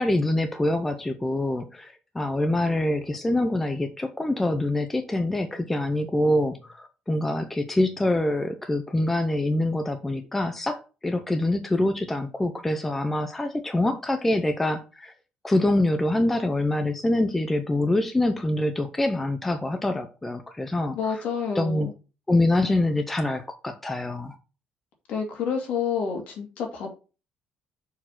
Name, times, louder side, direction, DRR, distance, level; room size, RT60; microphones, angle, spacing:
voice 1, 0.0-15.1 15.4-21.2 21.5-21.9 22.3-24.4, left 1 dB, 10° left, 0.6 m, -25 dB
voice 2, 20.9-21.9 25.1-26.9, left 6 dB, 55° left, 2.5 m, -29 dB
6.9 x 4.4 x 5.9 m
cardioid pair, 170°, 3 cm